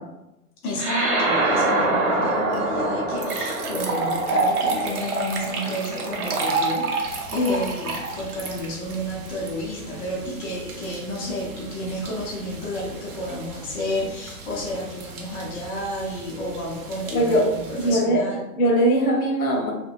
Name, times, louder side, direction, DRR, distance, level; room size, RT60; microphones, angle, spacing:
voice 1, 0.6-18.4, left 1 dB, 15° left, -5 dB, 0.4 m, -30 dB
sound 1, 0.8-5.5, right 2 dB, 30° right, 0.9 m, -25 dB
sound 2, 2.5-2.6 3.2-9.5, right 3 dB, 90° right, 0.7 m, -27 dB
sound 3, 7.0-18.0, right 2 dB, 60° right, 0.8 m, -42 dB
voice 2, 17.1-17.4 17.8-18.2 18.6-19.7, right 1 dB, 75° left, 0 dB, 1.1 m, -20 dB
2.8 x 2.3 x 2.4 m, 0.93 s
hypercardioid pair, 120°, 43 cm